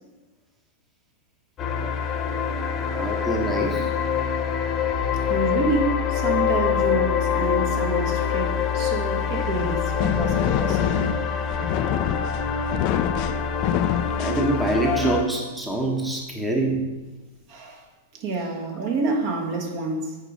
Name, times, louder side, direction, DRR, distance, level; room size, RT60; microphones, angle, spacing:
sound 1, 1.6-15.2, left 7 dB, 30° left, 1.1 m, -25 dB
voice 1, 2.9-3.9 14.2-16.8, right 2 dB, 5° right, 0 dB, 1.1 m, -25 dB
voice 2, 5.3-10.9 17.5-17.8 18.1-20.2, right 3 dB, 45° right, 1 dB, 1.6 m, -28 dB
sound 2, 9.4-15.0, left 11 dB, 45° left, 0.4 m, -26 dB
8.3 x 4.9 x 5.3 m, 1.2 s
figure-of-eight pair, 105°, 0 cm